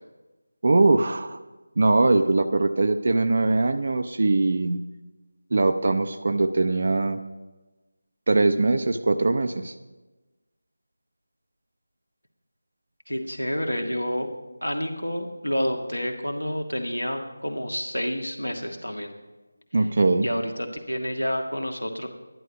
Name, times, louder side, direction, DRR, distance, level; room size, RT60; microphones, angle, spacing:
voice 1, 0.6-1.4 1.8-4.8 5.5-7.2 8.3-9.7 19.7-20.3, right 2 dB, 45° right, 8 dB, 0.6 m, -21 dB
voice 2, 13.1-14.3 14.6-19.1 20.2-22.1, equal, 90° left, 3 dB, 1.7 m, -29 dB
11.0 x 10.0 x 5.1 m, 1.2 s
figure-of-eight pair, 165°, 0 cm